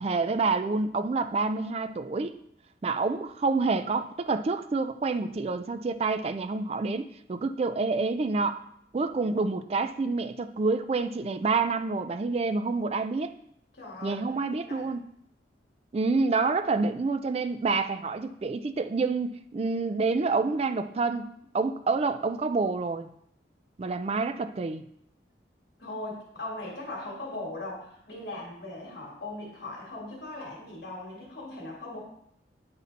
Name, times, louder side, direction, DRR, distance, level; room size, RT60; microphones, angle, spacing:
voice 1, 0.0-2.3 2.8-8.6 8.9-13.3 14.0-15.0 15.9-23.1 23.8-24.8, right 3 dB, 35° right, 10 dB, 0.3 m, -28 dB
voice 2, 13.7-14.2 14.6-14.9 16.4-16.5 25.8-32.0, left 2 dB, 70° left, -4 dB, 2.2 m, -39 dB
9.5 x 4.2 x 4.0 m, 0.71 s
head